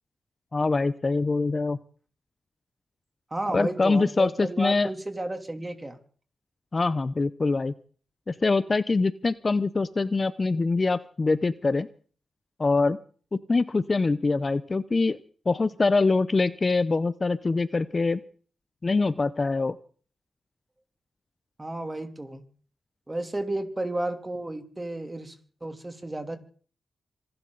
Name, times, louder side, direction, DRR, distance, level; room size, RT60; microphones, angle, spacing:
voice 1, 0.5-1.8 3.5-4.9 6.7-7.7 8.3-11.9 12.6-13.0 13.3-15.2 15.5-18.2 18.8-19.8, left 3 dB, 35° left, 14 dB, 0.7 m, -24 dB
voice 2, 3.3-6.0 21.6-22.4 23.1-25.3 25.6-26.4, right 1 dB, 20° right, 6 dB, 3.0 m, -32 dB
26.5 x 12.0 x 4.0 m, 0.43 s
cardioid pair, 90°, 0 cm